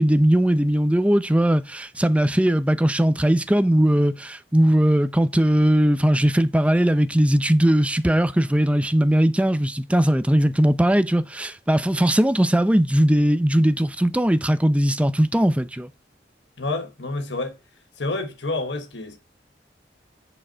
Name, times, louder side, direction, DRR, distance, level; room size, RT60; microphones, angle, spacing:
voice 1, 0.0-15.9, right 1 dB, 5° right, 0.5 m, -19 dB
voice 2, 16.6-17.6 18.0-19.2, left 2 dB, 80° left, 1.3 m, -28 dB
8.6 x 5.2 x 4.4 m
head